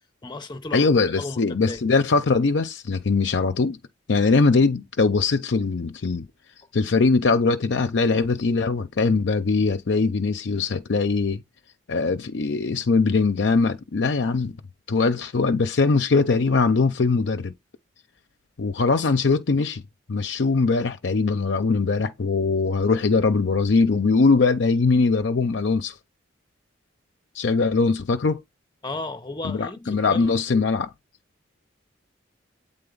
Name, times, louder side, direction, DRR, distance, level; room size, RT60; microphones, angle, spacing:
voice 1, 0.2-1.8 19.0-19.1 28.8-30.7, left 2 dB, 20° left, 0.7 m, -35 dB
voice 2, 0.7-3.8 4.1-6.3 6.7-11.4 11.9-14.6 14.9-17.5 18.6-19.8 20.1-25.9 27.3-28.4 29.4-30.9, left 4 dB, 60° left, 0.5 m, -21 dB
7.8 x 3.8 x 3.8 m
head